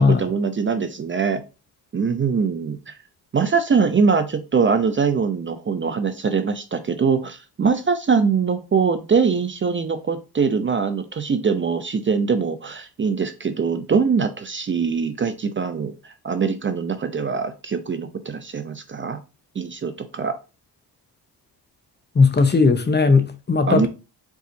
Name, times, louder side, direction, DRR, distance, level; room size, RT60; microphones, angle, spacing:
voice 1, 0.0-1.4 1.9-2.9 3.3-15.9 16.2-19.2 19.6-20.4 23.7-23.9, right 5 dB, 30° right, 0.6 m, -22 dB
voice 2, 22.2-23.9, left 4 dB, 25° left, 0.8 m, -17 dB
4.7 x 4.0 x 2.7 m
cardioid pair, 80°, 41 cm